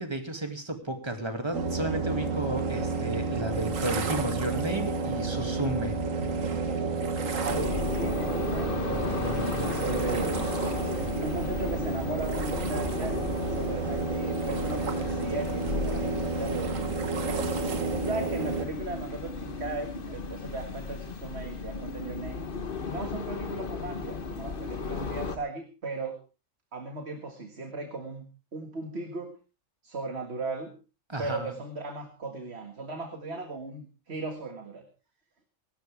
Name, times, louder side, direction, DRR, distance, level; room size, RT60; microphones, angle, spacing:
voice 1, 0.0-6.0 31.1-31.5, right 1 dB, 20° right, 5 dB, 2.4 m, -33 dB
sound 1, 1.5-18.7, right 4 dB, 75° right, 1.8 m, -31 dB
sound 2, 5.9-16.1 16.6-17.8, equal, 5° left, 5.0 m, -47 dB
voice 2, 7.4-10.6 11.2-13.2 13.5-17.2 18.0-22.4 22.8-26.2 26.7-28.3 28.5-29.3 29.8-30.8 31.2-34.8, right 3 dB, 55° right, 5 dB, 2.1 m, -37 dB
sound 3, 7.5-25.4, left 4 dB, 45° left, 1.3 m, -35 dB
24.5 x 12.5 x 3.5 m, 0.34 s
omnidirectional pair, 1.4 m